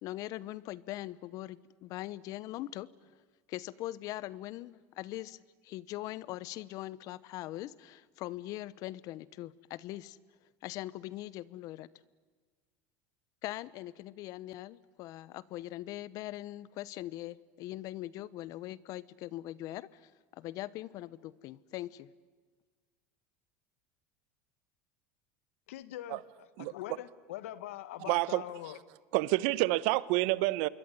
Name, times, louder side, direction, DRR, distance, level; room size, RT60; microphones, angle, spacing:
voice 1, 0.0-2.9 3.5-10.2 10.6-11.9 13.4-22.1, left 15 dB, 55° left, 19 dB, 1.0 m, -41 dB
voice 2, 25.7-28.8, left 13 dB, 85° left, 15 dB, 1.5 m, -43 dB
voice 3, 28.1-28.4 29.1-30.7, right 20 dB, 70° right, 18 dB, 1.0 m, -28 dB
26.5 x 22.0 x 10.0 m, 1.4 s
supercardioid pair, 110°, 7 cm